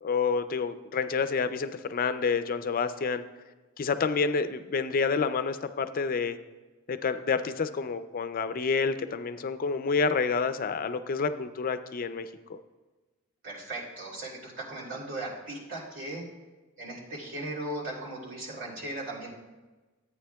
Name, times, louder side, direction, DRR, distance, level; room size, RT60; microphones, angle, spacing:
voice 1, 0.0-3.2 3.8-6.4 6.9-12.6, left 5 dB, 45° left, 11 dB, 0.4 m, -28 dB
voice 2, 13.4-16.2 16.8-19.3, right 1 dB, 65° right, -4 dB, 3.0 m, -37 dB
14.0 x 9.0 x 2.3 m, 1.2 s
head